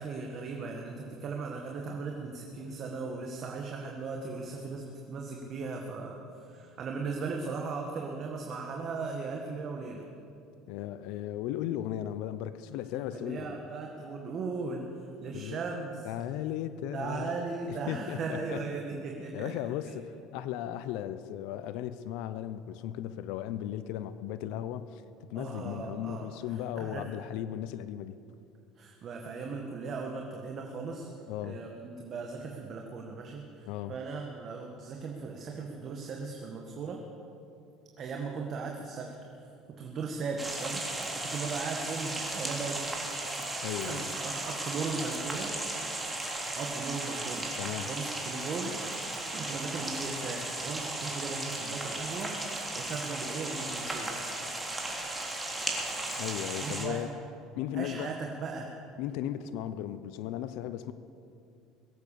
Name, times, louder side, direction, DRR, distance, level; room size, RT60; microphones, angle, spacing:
voice 1, 0.0-10.0 13.1-14.9 15.2-16.1 16.9-19.5 25.3-26.3 26.8-27.0 28.8-31.1 31.4-37.0 38.0-39.1 39.4-39.5 39.8-42.9 43.8-45.5 46.6-48.8 49.3-54.1 56.6-57.2 57.7-58.7, right 4 dB, 45° right, 1 dB, 1.8 m, -37 dB
voice 2, 10.7-13.6 15.3-15.6 16.0-18.6 19.3-25.0 25.3-28.2 31.3-31.6 33.7-34.0 43.6-44.1 47.6-47.9 56.2-57.1 57.6-58.1 59.0-60.9, left 11 dB, 70° left, 13 dB, 0.6 m, -36 dB
sound 1, 40.4-56.9, right 2 dB, 10° right, 3.2 m, -36 dB
22.0 x 8.5 x 6.9 m, 2.6 s
supercardioid pair, 100°, 0 cm